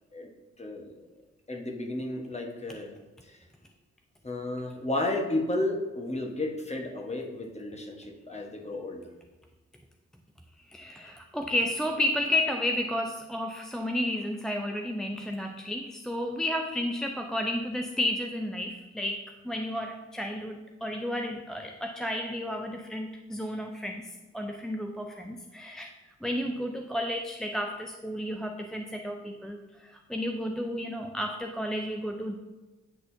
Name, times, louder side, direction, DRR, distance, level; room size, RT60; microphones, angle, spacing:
voice 1, 0.6-1.0 1.5-3.0 3.2-3.4 4.2-9.1, left 2 dB, 20° left, 1 dB, 1.2 m, -33 dB
voice 2, 10.7-25.9 26.2-32.4, left 1 dB, ahead, 3 dB, 0.4 m, -32 dB
9.3 x 4.0 x 2.7 m, 1.2 s
cardioid pair, 60°, 29 cm